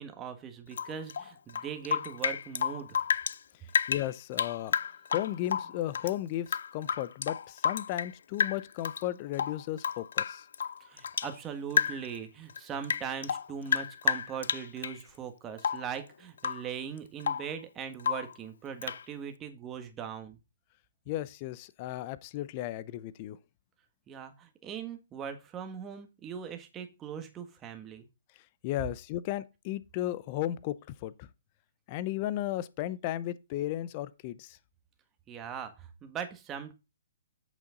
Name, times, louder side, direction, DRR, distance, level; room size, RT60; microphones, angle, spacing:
voice 1, 0.0-3.0 10.8-20.4 24.1-28.1 35.3-36.7, right 7 dB, 15° right, 1.5 m, -40 dB
Rain / Drip, 0.7-3.4 3.7-6.1 6.5-8.1 8.4-9.0 9.3-11.4 11.7-12.2 12.5-15.0 15.6-15.9 16.4-16.7 17.0-17.5 18.0-18.4 18.8-19.0, left 7 dB, 70° left, 0.4 m, -31 dB
voice 2, 3.9-4.8 5.1-10.4 21.1-23.4 28.6-31.3 31.9-34.6, left 14 dB, 35° left, 0.6 m, -35 dB
8.4 x 6.8 x 3.8 m
hypercardioid pair, 150°, 0 cm